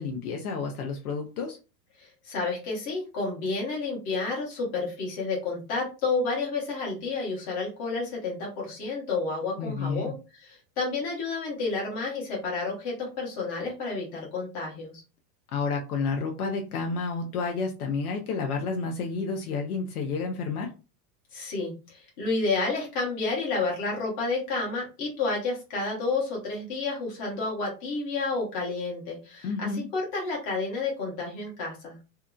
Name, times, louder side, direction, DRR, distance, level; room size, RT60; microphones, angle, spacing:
voice 1, 0.0-1.6 9.6-10.1 15.5-20.7 29.4-29.9, left 4 dB, 65° left, 3 dB, 0.7 m, -30 dB
voice 2, 2.0-15.0 21.3-32.0, left 3 dB, 25° left, -3 dB, 1.0 m, -30 dB
2.8 x 2.4 x 2.2 m, 0.31 s
supercardioid pair, 180°, 48 cm